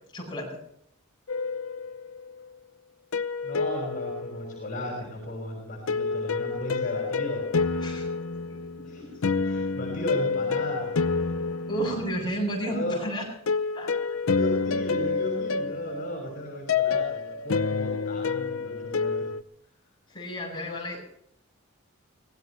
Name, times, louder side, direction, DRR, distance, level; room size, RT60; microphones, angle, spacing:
voice 1, 0.1-0.6 7.8-8.1 8.5-9.1 11.7-13.3 13.7-13.9 20.1-21.0, right 1 dB, 20° left, -3 dB, 7.7 m, -32 dB
sound 1, 1.3-2.3 3.1-4.9 5.9-12.6 13.5-19.4, left 4 dB, 70° left, 0.7 m, -28 dB
voice 2, 3.4-7.4 8.8-9.0 9.4-10.9 12.7-13.0 14.3-19.3, left 1 dB, 40° left, -2 dB, 6.0 m, -35 dB
24.0 x 18.5 x 3.2 m, 0.74 s
head